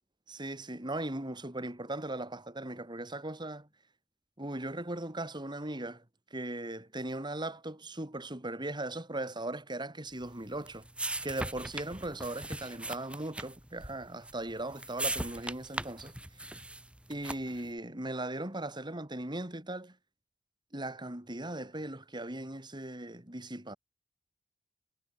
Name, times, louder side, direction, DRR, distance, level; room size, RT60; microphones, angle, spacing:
voice 1, 0.3-3.7 4.4-6.0 6.3-10.9 11.2-16.1 17.1-19.9 20.7-23.8, right 1 dB, 25° right, 3.2 m, -38 dB
sound 1, 10.2-17.7, right 1 dB, 5° right, 1.6 m, -40 dB
head